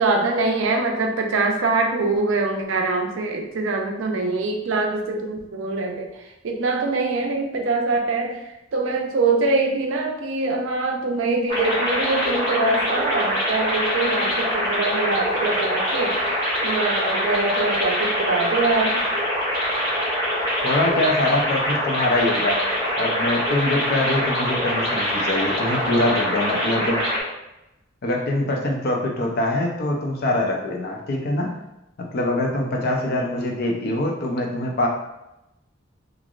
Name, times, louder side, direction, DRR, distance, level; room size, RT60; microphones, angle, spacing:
voice 1, 0.0-6.1 6.4-8.4 8.7-16.4 16.6-19.0, right 3 dB, 85° right, 2 dB, 0.5 m, -23 dB
sound 1, 11.5-27.2, equal, 20° left, 1.1 m, -24 dB
voice 2, 20.6-22.6 23.0-27.0 28.0-31.6 32.0-34.9, left 1 dB, 55° left, 1 dB, 0.5 m, -23 dB
3.2 x 2.4 x 2.3 m, 0.92 s
head